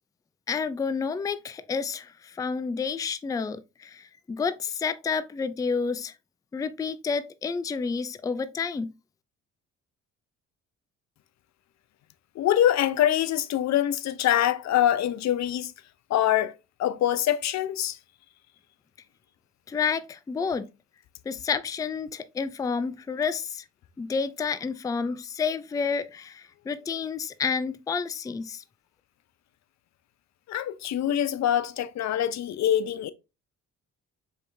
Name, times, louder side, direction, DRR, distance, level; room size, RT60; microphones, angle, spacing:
voice 1, 0.5-6.1 6.5-8.9 19.7-20.7 21.3-23.7 24.0-28.6, left 5 dB, 10° left, 0.3 m, -30 dB
voice 2, 12.4-15.7 16.1-16.5 16.8-18.0 30.5-33.1, left 11 dB, 65° left, 0.6 m, -24 dB
4.7 x 3.4 x 2.6 m
cardioid pair, 90°, 30 cm